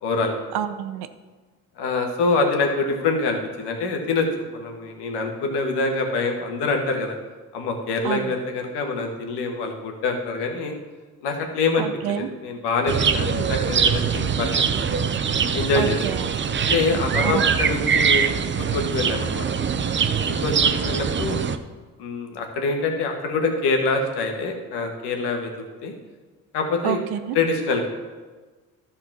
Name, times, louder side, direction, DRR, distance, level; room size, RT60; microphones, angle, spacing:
voice 1, 0.0-0.3 1.8-4.3 4.5-7.1 7.5-10.7 11.2-14.6 15.3-16.0 16.7-19.4 20.2-21.4 22.0-25.5 25.8-25.9 26.5-27.0 27.3-27.9, left 3 dB, 75° left, 3 dB, 1.6 m, -25 dB
voice 2, 0.5-1.1 8.0-8.3 11.8-12.3 15.7-16.3 17.2-17.4 26.8-27.4, right 9 dB, 65° right, 10 dB, 0.8 m, -27 dB
sound 1, 12.9-21.6, right 6 dB, 30° right, 0.6 m, -23 dB
12.0 x 4.3 x 6.0 m, 1.3 s
supercardioid pair, 60°, 41 cm